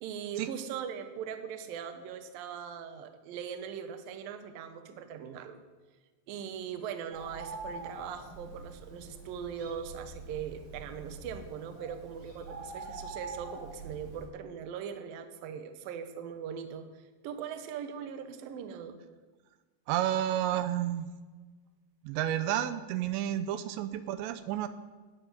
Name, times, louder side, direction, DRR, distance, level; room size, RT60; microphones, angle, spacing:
voice 1, 0.0-5.6 6.3-19.0, right 8 dB, 65° right, 8 dB, 2.5 m, -40 dB
Bird, 7.1-14.2, right 3 dB, 50° right, 4.6 m, -45 dB
voice 2, 19.9-21.1 22.0-24.7, right 11 dB, 85° right, 11 dB, 2.9 m, -31 dB
13.0 x 9.9 x 9.2 m, 1.3 s
omnidirectional pair, 5.1 m